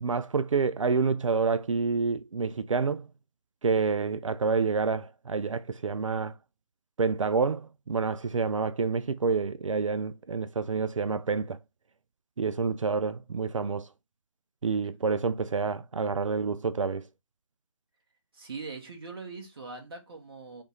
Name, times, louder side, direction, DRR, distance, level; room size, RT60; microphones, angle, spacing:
voice 1, 0.0-3.1 3.6-6.3 7.0-11.6 12.4-13.9 14.6-17.0, right 4 dB, 70° right, 0.4 m, -28 dB
voice 2, 18.3-20.6, right 4 dB, 45° right, 1.4 m, -41 dB
5.1 x 2.4 x 3.2 m
figure-of-eight pair, 150°, 17 cm